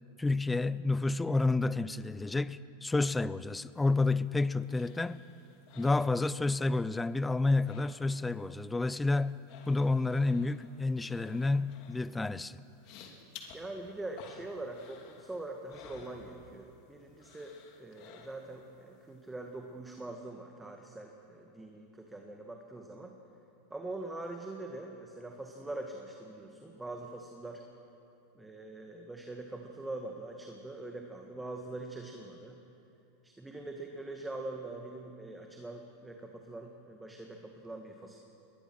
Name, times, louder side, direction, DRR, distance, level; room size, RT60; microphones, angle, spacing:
voice 1, 0.2-5.2 5.8-9.4 9.7-12.6, left 3 dB, 10° left, 0.5 m, -30 dB
sound 1, 3.7-6.8 7.0-8.4 8.7-16.8 17.2-18.7 19.1-19.2, left 6 dB, 55° left, 3.1 m, -55 dB
voice 2, 13.5-17.5 17.8-23.2 23.7-27.6 28.3-32.6 33.2-38.2, right 2 dB, 10° right, 1.8 m, -43 dB
21.5 x 20.5 x 6.3 m
hypercardioid pair, 105°, 0 cm